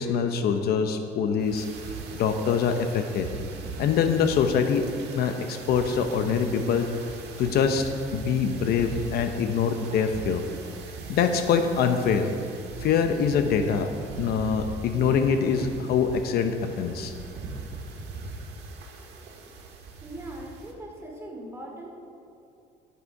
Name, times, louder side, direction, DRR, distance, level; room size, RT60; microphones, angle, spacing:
voice 1, 0.0-1.7 2.1-3.3 3.8-4.9 5.1-6.9 7.4-10.4 11.1-12.3 12.8-13.9 14.2-17.1, left 6 dB, 70° left, 7 dB, 0.8 m, -24 dB
sound 1, 1.4-20.7, right 3 dB, 80° right, 1.7 m, -40 dB
voice 2, 20.0-21.9, right 1 dB, 15° right, -2 dB, 2.4 m, -40 dB
12.5 x 8.1 x 4.7 m, 2.6 s
cardioid pair, 110°, 17 cm